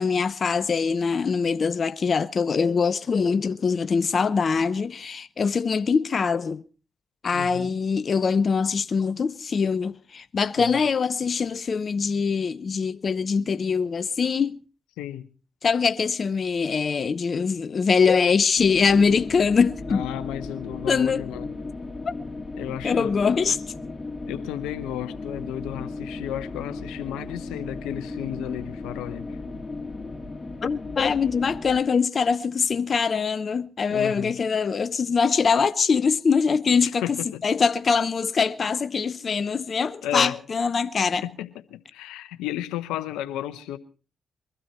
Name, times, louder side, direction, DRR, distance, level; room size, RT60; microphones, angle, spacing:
voice 1, 0.0-6.6 7.2-14.6 15.6-20.0 20.9-21.2 22.8-23.6 30.6-41.2, left 5 dB, 55° left, 0.7 m, -23 dB
voice 2, 7.3-7.8 10.6-10.7 15.0-15.3 19.9-21.5 22.6-23.1 24.3-29.4 33.9-34.3 36.7-37.4 40.0-40.4 41.2-43.8, left 12 dB, 85° left, 0.9 m, -33 dB
sound 1, 18.6-31.8, left 3 dB, 35° left, 2.8 m, -36 dB
22.5 x 12.5 x 4.4 m
supercardioid pair, 45°, 0 cm